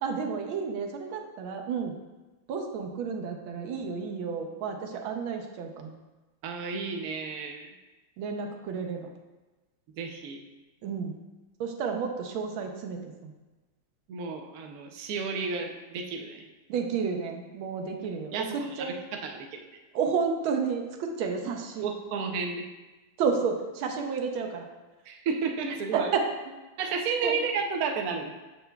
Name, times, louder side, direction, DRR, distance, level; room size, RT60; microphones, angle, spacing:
voice 1, 0.0-1.9 2.5-5.9 8.2-9.1 10.8-11.2 11.6-13.3 16.7-19.0 19.9-21.8 23.2-24.7 25.9-26.3 27.2-27.3, right 5 dB, 85° right, 3 dB, 1.5 m, -31 dB
voice 2, 6.4-7.7 10.0-10.4 14.1-16.4 18.3-19.5 21.8-22.6 25.1-26.1 26.8-28.3, right 5 dB, 70° right, 3 dB, 0.9 m, -32 dB
6.7 x 6.4 x 2.2 m, 1.2 s
omnidirectional pair, 2.2 m